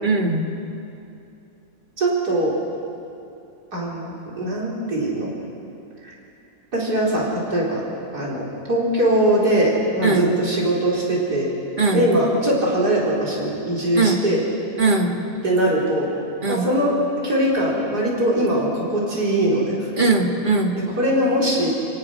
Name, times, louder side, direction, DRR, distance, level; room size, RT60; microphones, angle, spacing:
voice 1, 0.0-0.5 10.0-10.3 11.8-12.1 14.0-14.2 14.8-15.1 16.4-16.7 20.0-20.8, right 3 dB, 30° right, 2 dB, 1.9 m, -20 dB
voice 2, 2.0-2.6 3.7-5.3 6.7-7.8 8.1-11.5 11.9-14.4 15.4-16.1 16.5-17.0 17.2-19.8 20.7-21.7, right 1 dB, 75° right, -5 dB, 4.7 m, -21 dB
29.0 x 18.5 x 6.4 m, 2.7 s
omnidirectional pair, 1.7 m